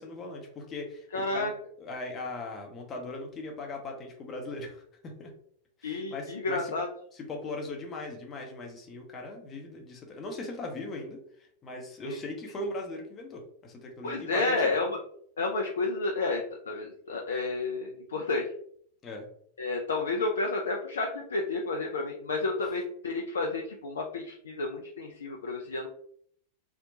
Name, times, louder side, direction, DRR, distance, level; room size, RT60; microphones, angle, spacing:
voice 1, 0.0-4.8 5.2-5.3 5.8-6.7 7.1-11.2 11.6-14.8 19.0-19.3, left 2 dB, 25° left, 1 dB, 0.6 m, -39 dB
voice 2, 1.1-1.5 5.8-6.9 12.0-12.2 14.0-14.9 15.4-18.5 19.6-25.9, left 3 dB, 70° left, 1 dB, 0.3 m, -31 dB
2.8 x 2.1 x 2.6 m, 0.63 s
figure-of-eight pair, 90°, 0 cm